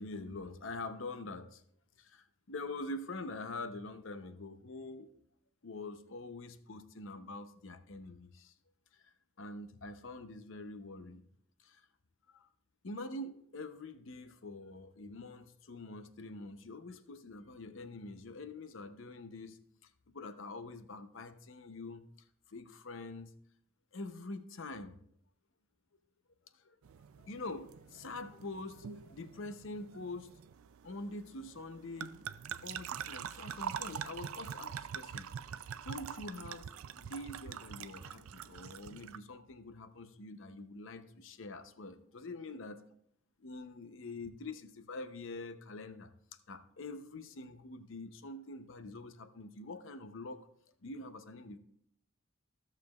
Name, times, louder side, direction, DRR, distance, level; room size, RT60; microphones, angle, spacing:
voice 1, 0.0-1.6 2.0-5.1 5.6-8.5 8.9-11.2 11.6-11.8 12.3-12.5 12.8-19.6 20.1-22.1 22.5-23.4 23.9-25.0 26.5-26.8 27.2-30.3 30.8-32.1 32.6-35.3 35.8-36.6 37.0-42.7 43.4-46.1 46.5-50.5 50.8-51.6, left 2 dB, 65° left, 9 dB, 0.7 m, -45 dB
sound 1, 26.8-39.2, right 8 dB, 90° right, 0.4 m, -45 dB
15.0 x 6.6 x 2.3 m, 0.68 s
head